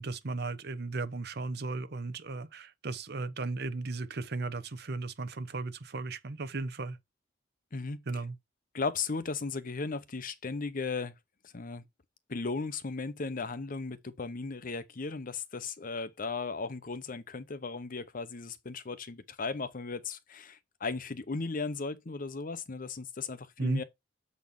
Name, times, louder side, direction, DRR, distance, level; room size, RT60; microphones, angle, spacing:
voice 1, 0.0-7.0 8.1-8.3 23.6-23.8, right 3 dB, 60° right, 0.8 m, -35 dB
voice 2, 7.7-8.0 8.7-11.1 11.5-11.8 12.3-23.8, left 4 dB, 45° left, 0.8 m, -36 dB
7.2 x 4.2 x 5.1 m
head